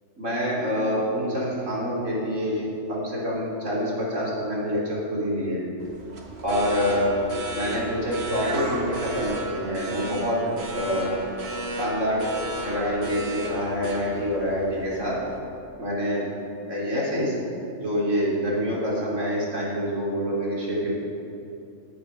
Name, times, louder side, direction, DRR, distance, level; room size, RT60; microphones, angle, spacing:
voice 1, 0.2-5.6 6.4-7.1 7.5-11.2 11.8-12.2 12.6-15.2 15.8-16.3 16.7-21.0, equal, 70° right, -6 dB, 3.6 m, -26 dB
sound 1, 5.8-15.4, right 1 dB, 55° right, 1.4 m, -33 dB
19.0 x 6.6 x 5.5 m, 2.8 s
omnidirectional pair, 1.3 m